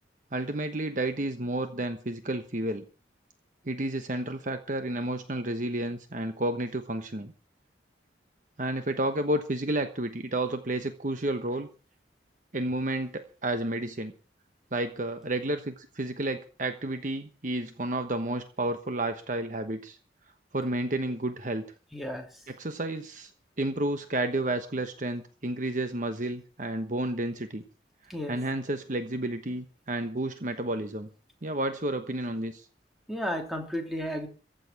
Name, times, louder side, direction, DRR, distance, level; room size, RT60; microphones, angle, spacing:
voice 1, 0.3-2.8 3.6-7.3 8.6-11.7 12.5-14.1 14.7-20.0 20.5-21.6 22.5-23.3 23.6-27.6 28.3-31.1 31.4-32.7, right 1 dB, 45° right, 8 dB, 1.1 m, -31 dB
voice 2, 21.9-22.2 28.1-28.4 33.1-34.3, equal, ahead, 2 dB, 3.1 m, -33 dB
15.0 x 6.8 x 8.7 m, 0.38 s
head